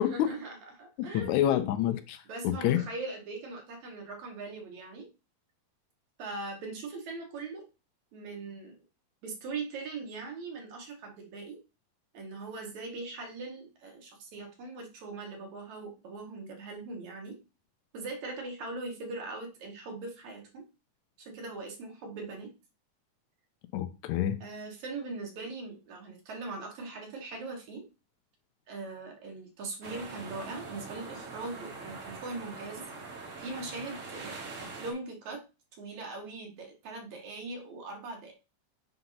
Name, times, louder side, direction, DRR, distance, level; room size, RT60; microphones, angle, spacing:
voice 1, 0.0-1.7 2.3-5.1 6.2-7.7 8.1-8.8 9.2-11.6 12.1-17.4 17.9-20.6 21.2-22.5 24.4-27.9 28.7-32.9 33.4-35.4 35.8-38.3, right 3 dB, 70° right, 2.8 m, -41 dB
voice 2, 1.0-2.8 23.7-24.4, left 11 dB, 80° left, 1.9 m, -28 dB
sound 1, 29.8-34.9, right 3 dB, 50° right, 0.9 m, -43 dB
7.9 x 2.7 x 5.7 m
omnidirectional pair, 3.5 m